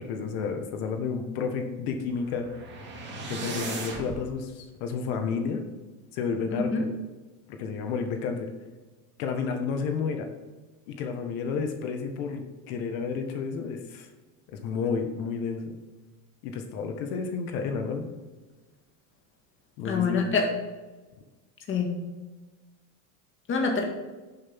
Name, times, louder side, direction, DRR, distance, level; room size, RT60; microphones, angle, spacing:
voice 1, 0.0-2.5 3.3-5.6 6.1-6.9 7.5-8.5 9.2-10.3 10.9-14.1 14.5-15.7 16.4-18.1 19.8-20.3, left 5 dB, 70° left, 5 dB, 1.7 m, -31 dB
sound 1, 2.0-4.2, right 3 dB, 25° right, 2.3 m, -37 dB
voice 2, 6.5-6.9 19.9-20.5 21.7-22.0 23.5-23.8, left 4 dB, 30° left, 2 dB, 2.0 m, -26 dB
10.5 x 7.8 x 3.7 m, 1.2 s
cardioid pair, 145°, 42 cm